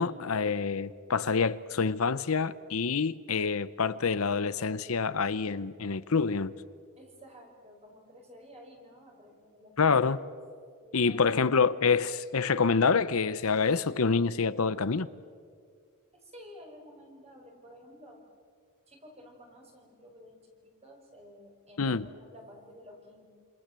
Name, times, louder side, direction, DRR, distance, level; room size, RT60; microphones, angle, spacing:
voice 1, 0.0-6.5 9.8-10.2 10.9-15.1 21.8-22.0, left 5 dB, 70° left, 0.8 m, -27 dB
voice 2, 7.0-10.0 10.8-11.3 16.1-18.2 18.9-23.3, equal, 30° right, 5.7 m, -52 dB
27.5 x 27.5 x 7.6 m
head